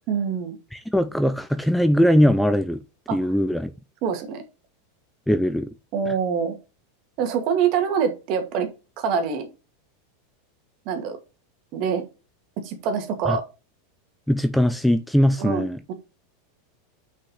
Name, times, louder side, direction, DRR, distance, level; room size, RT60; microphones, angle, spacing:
voice 1, 0.1-0.6 3.1-3.2 4.0-4.4 5.9-6.5 7.2-8.7 9.0-9.5 10.9-11.2 11.7-12.0 12.6-13.4 15.4-15.6, right 7 dB, 50° right, 2.2 m, -25 dB
voice 2, 0.7-2.8 3.1-3.7 5.3-5.7 13.3-13.4 14.3-15.8, equal, ahead, 0.6 m, -20 dB
5.8 x 5.6 x 5.7 m
hypercardioid pair, 100°, 0 cm